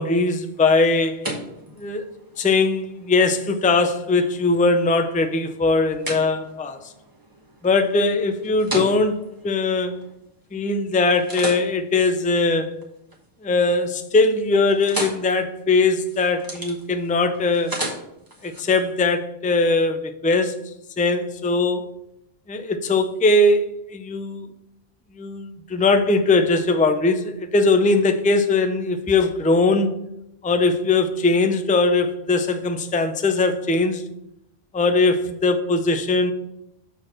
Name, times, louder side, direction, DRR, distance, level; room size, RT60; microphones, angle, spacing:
voice 1, 0.0-1.3 1.8-2.0 2.4-6.8 7.6-9.2 9.4-9.9 10.5-12.7 13.4-17.7 18.4-20.5 21.0-21.9 22.5-24.5 25.2-29.9 30.4-34.0 34.7-36.3, left 3 dB, 15° left, 8 dB, 0.3 m, -20 dB
sound 1, 0.5-10.5 11.0-13.2 13.6-14.0 14.3-18.6, right 1 dB, 20° right, 1.3 m, -36 dB
6.7 x 4.3 x 6.1 m, 0.84 s
omnidirectional pair, 1.1 m